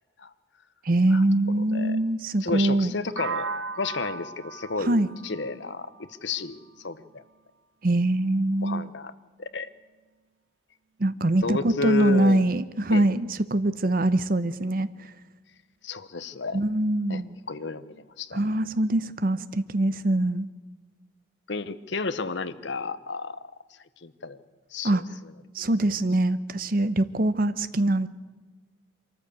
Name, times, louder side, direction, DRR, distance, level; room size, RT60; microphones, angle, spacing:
voice 1, 0.8-2.9 4.8-5.1 7.8-8.9 11.0-14.9 16.5-17.4 18.3-20.5 24.8-25.0 25.5-28.1, right 1 dB, 45° right, 14 dB, 0.8 m, -23 dB
voice 2, 2.4-3.5 3.7-5.9 6.2-7.2 8.6-9.1 9.4-9.7 11.4-12.5 12.9-13.0 15.8-16.6 17.1-17.2 17.5-18.4 21.5-23.5 24.0-24.4 24.7-25.0, left 4 dB, 70° left, 13 dB, 0.9 m, -32 dB
sound 1, 3.2-7.0, right 4 dB, 85° right, 1.3 m, -37 dB
24.0 x 14.0 x 8.3 m, 1.3 s
head